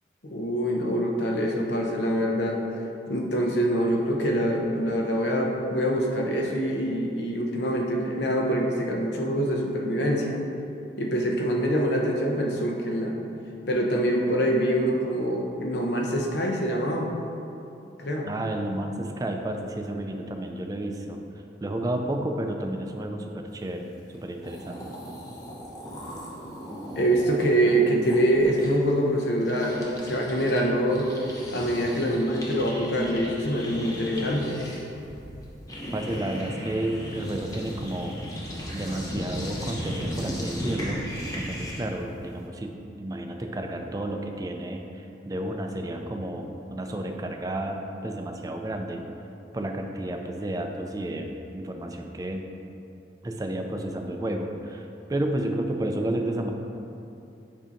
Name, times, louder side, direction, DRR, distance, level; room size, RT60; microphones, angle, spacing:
voice 1, 0.2-2.6 3.1-10.4 11.0-13.2 13.7-17.2 18.0-18.3 27.0-31.1 31.5-34.6, equal, 70° left, 0 dB, 0.8 m, -25 dB
voice 2, 18.3-21.2 21.6-23.9 24.1-24.9 35.9-38.2 38.7-41.0 41.4-49.0 49.5-52.5 53.2-56.5, right 1 dB, 20° right, 3 dB, 0.3 m, -31 dB
sound 1, 24.1-24.2 24.4-30.6 30.9-42.0, equal, 20° left, 0.9 m, -36 dB
7.3 x 2.8 x 5.1 m, 2.7 s
head